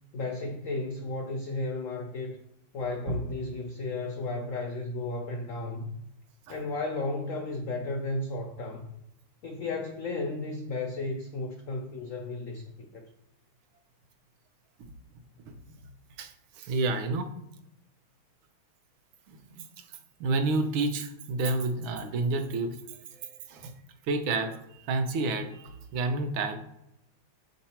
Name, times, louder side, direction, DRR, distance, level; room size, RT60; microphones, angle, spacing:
voice 1, 0.1-2.4 2.7-5.9 6.5-8.9 9.4-13.1, left 2 dB, 90° left, 3 dB, 0.7 m, -34 dB
voice 2, 15.5-15.9 16.2-17.3 19.3-19.6 20.2-22.8 23.2-23.7 24.1-26.6, right 3 dB, 80° right, 7 dB, 1.6 m, -30 dB
7.1 x 3.9 x 4.3 m, 0.84 s
omnidirectional pair, 2.2 m